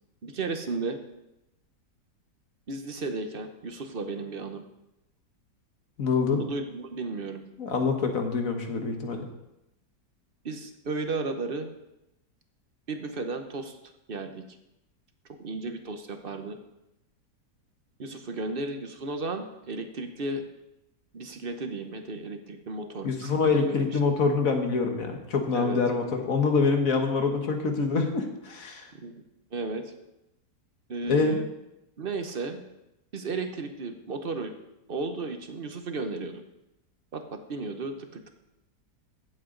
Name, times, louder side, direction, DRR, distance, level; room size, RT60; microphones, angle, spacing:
voice 1, 0.2-1.0 2.7-4.6 6.3-7.4 10.4-11.7 12.9-13.8 14.1-14.4 15.4-16.6 18.0-20.4 21.1-23.8 25.5-25.8 29.0-29.2 29.5-29.9 30.9-31.5 32.0-32.6 33.1-34.5 34.9-36.4 37.1-38.3, right 3 dB, 40° right, 6 dB, 1.0 m, -34 dB
voice 2, 6.0-6.4 7.6-9.3 23.0-28.9 31.1-31.4, left 4 dB, 55° left, 4 dB, 1.7 m, -25 dB
15.5 x 8.0 x 3.9 m, 0.90 s
omnidirectional pair, 1.8 m